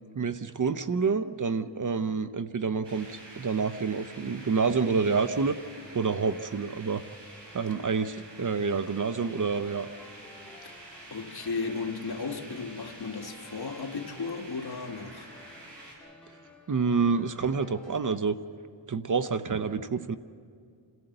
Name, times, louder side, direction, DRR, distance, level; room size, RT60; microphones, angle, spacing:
voice 1, 0.1-5.6 5.9-7.0 7.5-9.9 16.7-18.4 18.9-20.2, right 5 dB, 40° right, 0.8 m, -28 dB
sound 1, 2.8-16.0, right 2 dB, 60° right, 6.3 m, -48 dB
sound 2, 7.2-18.3, left 3 dB, ahead, 3.5 m, -54 dB
voice 2, 10.6-15.3, left 4 dB, 55° left, 1.8 m, -35 dB
27.5 x 14.0 x 7.9 m
cardioid pair, 65°, 46 cm